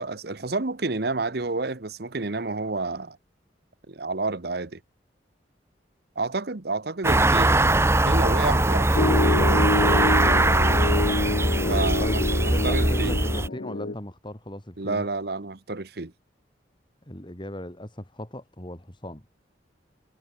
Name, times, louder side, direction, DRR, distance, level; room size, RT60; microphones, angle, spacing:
voice 1, 0.0-3.2 3.9-4.8 6.2-9.3 11.7-12.2 12.6-13.2 14.8-16.1, right 3 dB, 65° right, 1.1 m, -30 dB
sound 1, 7.0-13.5, right 2 dB, 15° right, 1.1 m, -21 dB
Piano, 9.0-13.9, left 3 dB, 75° left, 0.9 m, -26 dB
voice 2, 11.6-15.0 17.1-19.2, left 1 dB, 25° left, 3.0 m, -37 dB
head